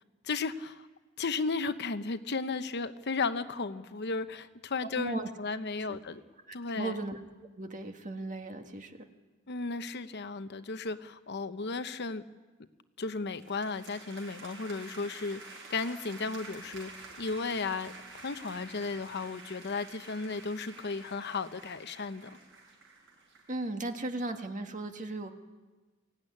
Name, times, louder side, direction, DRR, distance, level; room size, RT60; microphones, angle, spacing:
voice 1, 0.2-0.9 1.2-6.2 6.5-6.9 9.5-12.2 13.0-15.4 15.7-16.9 17.2-22.4, left 4 dB, 55° left, 10 dB, 0.9 m, -34 dB
voice 2, 4.8-5.3 5.8-6.0 6.5-7.2 7.6-9.1 23.5-25.3, right 2 dB, 40° right, 5 dB, 1.8 m, -36 dB
sound 1, 13.3-23.7, right 3 dB, 65° right, 6.5 m, -49 dB
23.0 x 17.0 x 9.8 m, 1.3 s
head